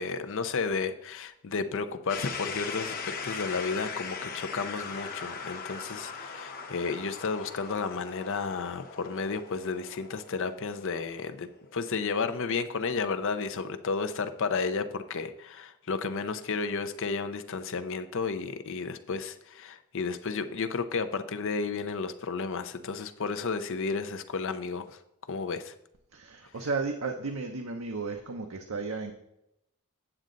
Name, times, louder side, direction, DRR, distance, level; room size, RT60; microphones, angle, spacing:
voice 1, 0.0-3.0 3.2-25.0 25.3-25.7, left 4 dB, 60° left, 9 dB, 0.6 m, -32 dB
sound 1, 2.1-11.9, left 5 dB, 40° left, 1.0 m, -40 dB
voice 2, 26.1-29.1, right 4 dB, 70° right, 4 dB, 0.8 m, -34 dB
8.8 x 7.4 x 3.9 m, 0.82 s
head